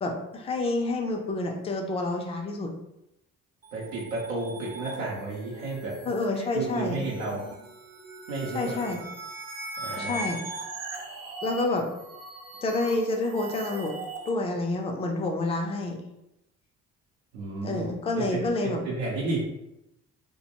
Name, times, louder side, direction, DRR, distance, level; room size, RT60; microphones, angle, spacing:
voice 1, 0.0-2.7 6.1-7.1 8.5-9.0 10.0-10.4 11.4-11.9 12.6-14.0 14.3-16.0 17.6-18.8, left 2 dB, 15° left, 2 dB, 0.4 m, -28 dB
sound 1, 3.6-14.3, right 2 dB, 40° right, 0.6 m, -40 dB
voice 2, 3.7-7.5 8.3-8.8 9.8-10.2 17.3-17.8 18.2-19.4, right 2 dB, 80° right, -5 dB, 0.7 m, -32 dB
2.2 x 2.1 x 2.9 m, 0.87 s
hypercardioid pair, 55°, 40 cm